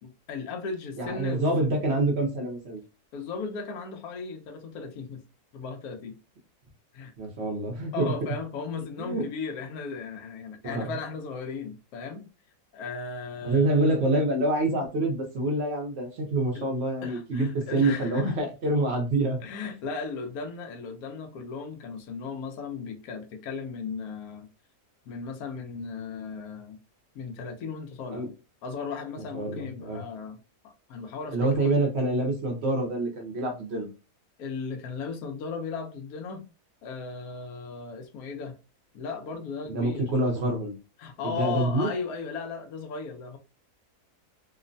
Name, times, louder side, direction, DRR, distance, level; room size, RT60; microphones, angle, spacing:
voice 1, 0.0-1.5 3.1-5.2 5.5-6.2 6.9-7.1 7.9-12.2 12.7-13.7 16.5-16.6 17.0-18.4 19.4-24.5 25.1-26.8 27.1-28.2 28.6-31.7 34.4-36.4 36.8-38.5 38.9-40.1 41.0-43.4, left 5 dB, 75° left, 1.1 m, -36 dB
voice 2, 1.0-2.8 7.2-8.1 9.0-9.2 10.6-10.9 13.4-19.4 28.1-28.3 29.3-30.0 31.3-33.9 39.7-40.7 41.2-41.9, right 2 dB, 55° right, 0.8 m, -26 dB
3.0 x 2.1 x 2.5 m
omnidirectional pair, 1.7 m